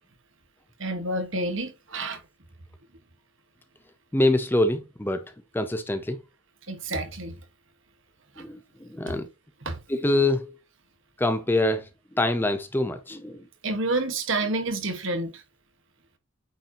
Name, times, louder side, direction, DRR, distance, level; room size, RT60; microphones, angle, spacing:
voice 1, 0.8-2.2 6.7-7.4 8.4-8.5 9.1-9.2 9.6-9.8 13.6-15.4, right 2 dB, 60° right, 1.6 m, -29 dB
voice 2, 4.1-6.2 8.4-9.3 9.9-10.6 11.2-11.9 12.1-13.5, left 1 dB, 10° left, 0.6 m, -25 dB
8.8 x 5.0 x 3.0 m
head